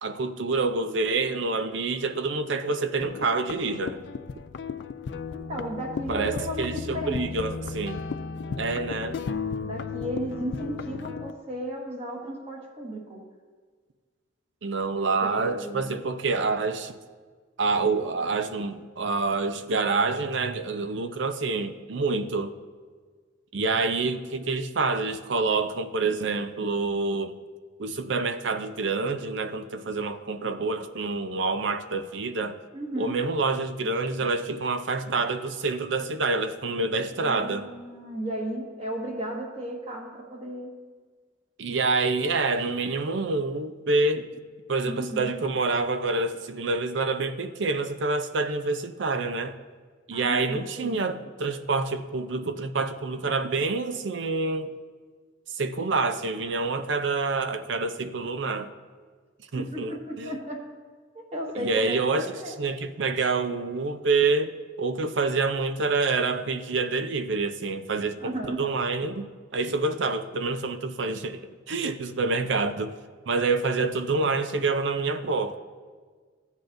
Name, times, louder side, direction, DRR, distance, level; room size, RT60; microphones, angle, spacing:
voice 1, 0.0-4.0 6.1-8.0 8.6-9.2 14.6-17.0 17.6-22.5 23.5-27.4 27.8-32.6 33.0-37.7 41.6-44.2 44.7-49.6 50.1-54.7 55.5-58.7 59.5-60.3 61.6-73.0 73.3-75.6, right 3 dB, 70° right, 0.5 m, -27 dB
sound 1, 3.0-11.3, left 5 dB, 60° left, 0.3 m, -35 dB
voice 2, 5.3-7.3 9.6-13.2 14.9-15.9 32.7-33.2 37.2-40.7 44.8-45.3 50.1-51.0 59.5-60.6 61.1-62.5 68.2-68.6, right 1 dB, 30° right, 1.5 m, -35 dB
15.0 x 8.1 x 2.6 m
head